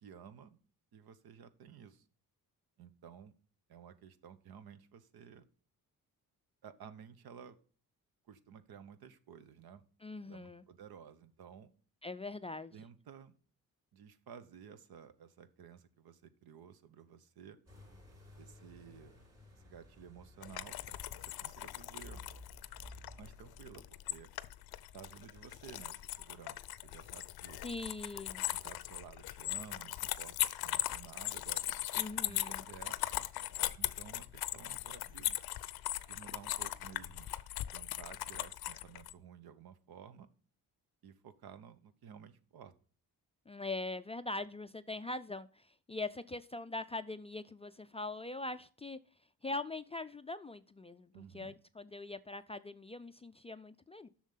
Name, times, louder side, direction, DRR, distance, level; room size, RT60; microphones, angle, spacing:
voice 1, 0.0-0.6 0.9-2.0 2.8-3.3 3.7-5.4 6.6-7.6 8.3-9.8 10.2-11.7 12.7-13.3 13.9-17.6 18.4-19.2 19.6-22.2 23.2-24.3 24.9-27.6 28.5-31.7 32.2-33.0 33.8-35.4 36.1-37.4 37.7-40.3 41.0-42.7 51.1-51.5, right 8 dB, 75° right, 0.9 m, -54 dB
voice 2, 10.0-10.6 12.0-12.7 27.6-28.4 32.0-32.6 43.5-49.0 49.4-54.1, left 2 dB, 20° left, 0.3 m, -42 dB
sound 1, 17.7-23.8, left 1 dB, 45° right, 3.4 m, -56 dB
sound 2, 20.4-39.1, left 14 dB, 80° left, 0.6 m, -39 dB
7.3 x 6.3 x 5.5 m
cardioid pair, 85°, 37 cm